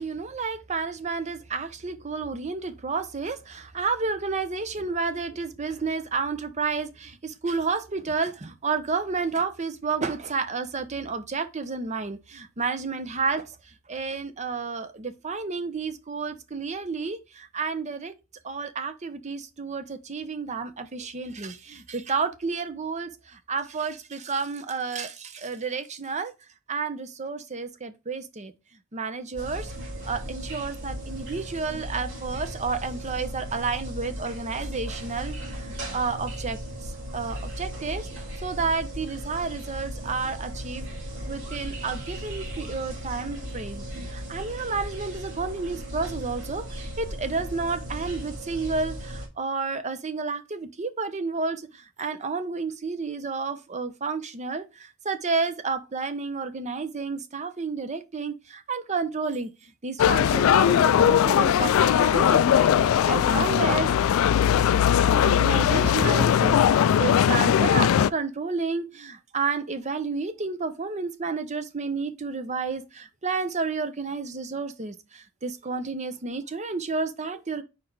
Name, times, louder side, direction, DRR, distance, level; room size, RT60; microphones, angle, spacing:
voice 1, 0.0-13.5 13.9-18.1 18.4-23.1 23.5-26.3 26.7-28.5 28.9-29.7 30.0-36.6 37.1-38.1 38.4-40.9 41.3-59.5 59.8-63.9 64.6-64.7 65.2-66.6 67.0-77.6, right 4 dB, 35° right, 0.8 m, -31 dB
sound 1, 29.4-49.3, equal, 70° right, 3.4 m, -36 dB
sound 2, 60.0-68.1, left 9 dB, 80° left, 0.3 m, -20 dB
sound 3, 61.5-68.1, left 2 dB, 25° left, 0.7 m, -39 dB
4.8 x 4.3 x 4.5 m
head